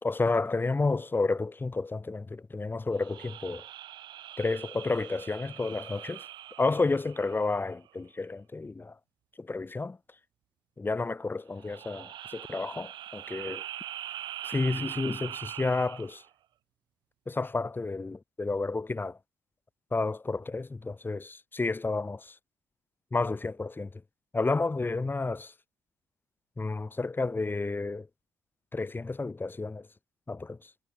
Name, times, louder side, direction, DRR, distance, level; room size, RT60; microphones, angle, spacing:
voice 1, 0.0-3.6 4.4-6.3 6.6-9.0 9.4-10.0 10.8-13.6 14.4-16.2 17.3-19.2 19.9-22.4 23.1-24.0 24.3-25.5 26.6-28.1 28.7-29.9 30.3-30.7, left 3 dB, 25° left, 2.0 m, -31 dB
sound 1, 3.0-7.7 11.5-16.3, right 12 dB, 70° right, 1.8 m, -42 dB
hypercardioid pair, 50°, 8 cm